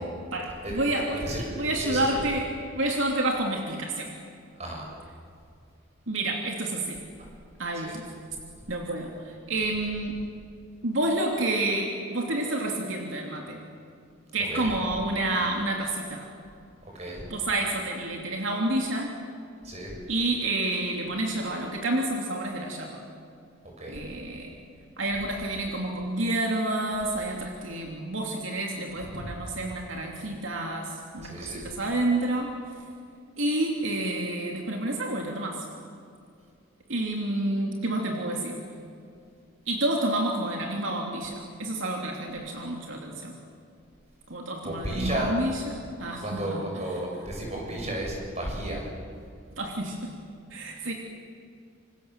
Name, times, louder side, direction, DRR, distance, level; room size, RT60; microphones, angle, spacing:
voice 1, 0.3-4.1 6.1-7.0 7.6-8.0 8.7-10.2 10.8-13.6 14.3-16.3 17.3-19.1 20.1-23.0 23.9-24.6 25.0-32.5 33.4-35.6 36.9-38.6 39.7-43.3 44.3-46.7 49.6-50.1 50.5-50.9, right 1 dB, 70° right, 1 dB, 2.9 m, -29 dB
voice 2, 1.2-2.2 4.6-4.8 7.7-7.9 14.5-14.7 16.9-17.2 19.6-19.9 23.8-24.0 29.1-29.3 31.2-31.6 44.6-45.3 46.2-48.8, right 1 dB, 30° right, -1 dB, 7.4 m, -33 dB
27.5 x 26.5 x 7.6 m, 2.4 s
head